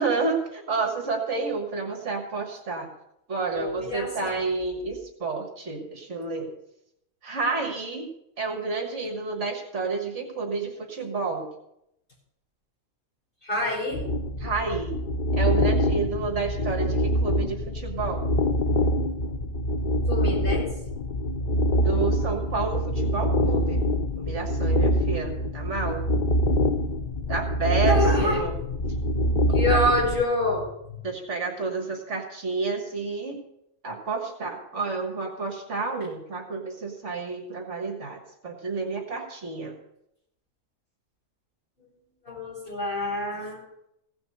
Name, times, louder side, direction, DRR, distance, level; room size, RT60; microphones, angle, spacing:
voice 1, 0.0-2.9 3.3-6.5 7.2-8.1 8.4-11.5 14.4-14.9 15.4-18.3 21.9-23.9 24.2-26.0 27.3-28.5 29.7-29.8 31.0-33.4 33.8-39.7, right 4 dB, 60° right, 3 dB, 1.8 m, -30 dB
voice 2, 3.5-4.4 13.4-14.1 20.1-20.7 27.9-28.4 29.5-30.7 42.3-43.6, left 1 dB, 40° left, -5 dB, 5.6 m, -26 dB
sound 1, 13.9-30.2, equal, 80° left, 0.4 m, -25 dB
16.0 x 5.9 x 6.5 m, 0.79 s
omnidirectional pair, 1.4 m